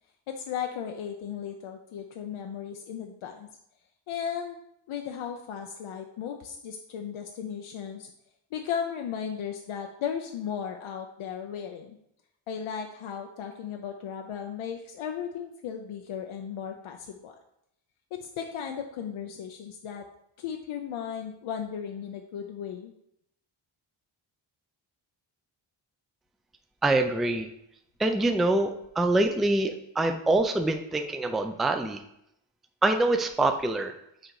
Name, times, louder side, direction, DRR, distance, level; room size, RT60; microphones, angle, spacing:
voice 1, 0.3-3.5 4.1-4.6 4.9-8.1 8.5-12.0 12.5-17.4 18.1-20.1 20.4-22.9, left 8 dB, 85° left, 4 dB, 0.8 m, -36 dB
voice 2, 26.8-27.5 28.0-32.0 32.8-33.9, right 2 dB, ahead, 6 dB, 0.4 m, -25 dB
6.4 x 3.9 x 4.7 m, 0.77 s
cardioid pair, 100°, 48 cm